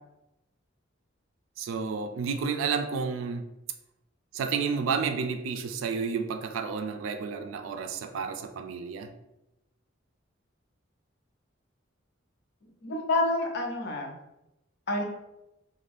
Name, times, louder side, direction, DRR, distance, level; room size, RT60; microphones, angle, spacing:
voice 1, 1.6-3.5 4.3-9.1, right 5 dB, 80° right, 0.3 m, -31 dB
voice 2, 12.8-14.2 14.9-15.0, left 2 dB, 60° left, 0.5 m, -28 dB
2.5 x 2.2 x 3.4 m
head